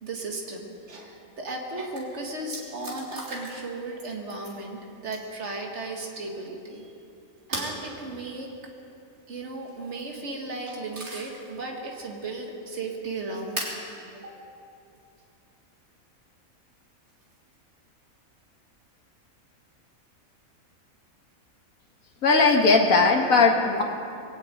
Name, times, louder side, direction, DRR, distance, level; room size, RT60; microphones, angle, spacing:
voice 1, 0.0-6.9 7.5-8.5 9.3-13.6 13.9-14.3, right 2 dB, 55° right, 1 dB, 2.1 m, -35 dB
sound 1, 1.6-1.7 1.9-2.0 2.5-3.7 4.0-4.6 5.1-5.4 7.5-7.8 9.7-10.1 10.6-11.4 11.9-12.0 13.6-13.8 15.0-15.1 17.1-17.5, right 2 dB, 85° right, 4.3 m, -36 dB
voice 2, 22.2-23.8, left 3 dB, 75° left, 2 dB, 2.0 m, -18 dB
21.5 x 7.4 x 9.1 m, 2.6 s
omnidirectional pair, 1.5 m